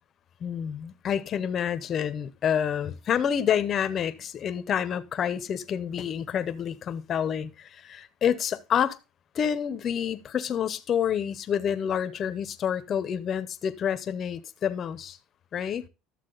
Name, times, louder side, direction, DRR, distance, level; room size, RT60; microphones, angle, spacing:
voice 1, 0.4-9.0 9.3-15.2 15.5-15.8, left 8 dB, 30° left, 0.6 m, -28 dB
11.5 x 7.1 x 3.8 m
cardioid pair, 165°, 0 cm